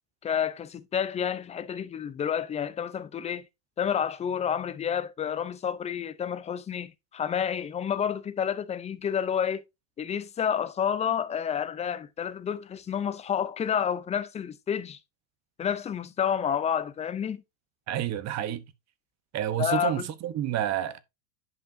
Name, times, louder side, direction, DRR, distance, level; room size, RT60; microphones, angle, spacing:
voice 1, 0.2-3.5 3.8-9.6 10.0-15.0 15.6-17.4 19.6-20.1, left 8 dB, 15° left, 0.4 m, -29 dB
voice 2, 17.9-18.6 19.3-21.0, right 11 dB, 35° right, 1.0 m, -29 dB
10.5 x 5.4 x 2.6 m
hypercardioid pair, 105°, 49 cm